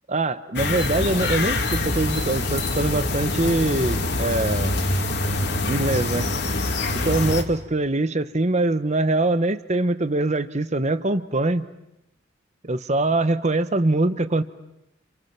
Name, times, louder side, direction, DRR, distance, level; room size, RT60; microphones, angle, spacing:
voice 1, 0.1-4.8 5.7-6.3 6.9-11.7 12.6-14.4, right 2 dB, 35° right, 12 dB, 1.1 m, -23 dB
sound 1, 0.6-7.4, left 2 dB, 60° left, 2.6 m, -25 dB
30.0 x 29.0 x 6.0 m, 0.87 s
head